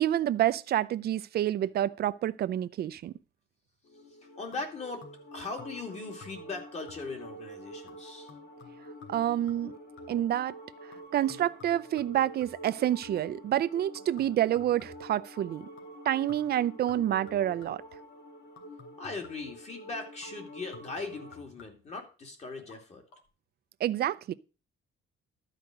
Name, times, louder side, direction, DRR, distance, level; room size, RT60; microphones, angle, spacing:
voice 1, 0.0-3.1 9.1-9.7 10.1-10.5 11.1-15.7 16.0-17.8 23.8-24.3, right 12 dB, 50° right, 0.6 m, -28 dB
sound 1, 3.8-21.4, right 1 dB, 55° left, 1.8 m, -47 dB
voice 2, 4.1-8.3 19.0-23.0, left 3 dB, 35° left, 2.8 m, -40 dB
sound 2, 4.5-5.3 5.6-5.9 6.2-6.6 6.9-7.3 7.9-10.3 10.9-13.4 14.0-15.2 15.8-16.0 16.3-17.9 18.6-19.6 20.2-22.0 22.6-22.8 23.1-23.2, left 6 dB, 85° left, 3.1 m, -55 dB
12.5 x 5.1 x 7.8 m
cardioid pair, 175°, 21 cm